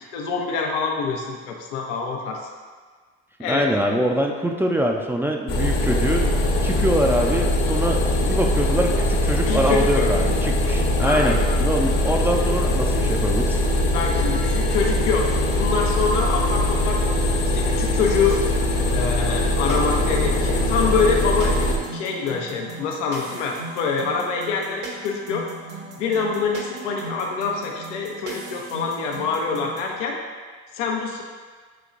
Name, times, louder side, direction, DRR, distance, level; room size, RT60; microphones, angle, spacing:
voice 1, 0.1-2.5 3.4-3.7 9.4-10.1 11.0-11.5 13.8-17.0 17.5-18.5 18.9-21.6 21.9-25.5 26.0-30.2 30.7-31.2, left 5 dB, 85° left, 1 dB, 0.7 m, -25 dB
voice 2, 3.5-6.3 6.6-13.6, equal, 5° right, 1 dB, 0.4 m, -24 dB
sound 1, 5.5-21.8, left 1 dB, 60° left, 1.2 m, -21 dB
sound 2, 19.7-30.0, right 3 dB, 55° right, 1.1 m, -37 dB
6.8 x 2.9 x 2.5 m, 1.5 s
hypercardioid pair, 70°, 36 cm